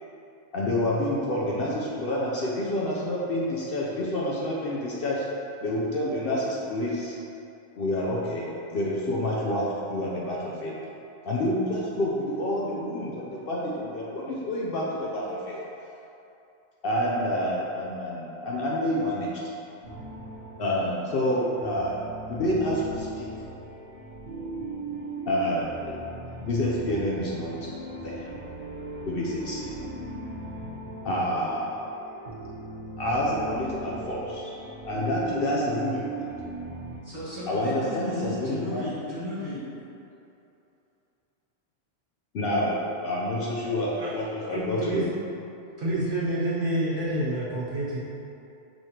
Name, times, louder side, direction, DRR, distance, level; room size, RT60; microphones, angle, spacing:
voice 1, 0.5-5.2 5.6-7.2 7.8-10.8 11.2-15.6 16.8-19.3 20.6-22.0 22.3-23.3 25.3-26.0 26.4-27.7 28.0-28.3 29.0-29.8 31.0-32.0 33.0-34.6 34.8-36.3 37.5-38.8 42.3-45.1, left 1 dB, 60° left, -5 dB, 0.7 m, -28 dB
sound 1, 19.8-37.0, right 2 dB, 70° right, 1.3 m, -38 dB
voice 2, 37.0-39.6, left 2 dB, 15° left, -12 dB, 1.5 m, -35 dB
voice 3, 44.5-45.1 45.8-48.0, right 1 dB, 90° right, -9 dB, 1.5 m, -28 dB
5.5 x 3.1 x 2.8 m, 2.8 s
omnidirectional pair, 1.2 m